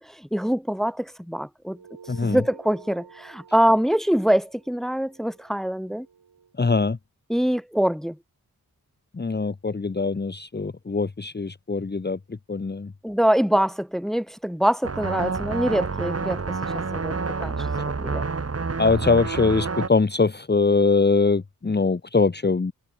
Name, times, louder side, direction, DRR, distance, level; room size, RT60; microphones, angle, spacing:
voice 1, 0.0-1.8 2.2-6.1 7.3-8.2 13.0-18.3, equal, ahead, 0.3 m, -24 dB
sound 1, 1.7-6.5, right 6 dB, 85° right, 7.7 m, -50 dB
voice 2, 2.1-2.4 6.6-7.0 9.1-12.9 18.8-22.7, left 4 dB, 30° left, 1.1 m, -22 dB
sound 2, 14.8-19.9, right 4 dB, 40° right, 1.7 m, -28 dB
cardioid pair, 45°, 37 cm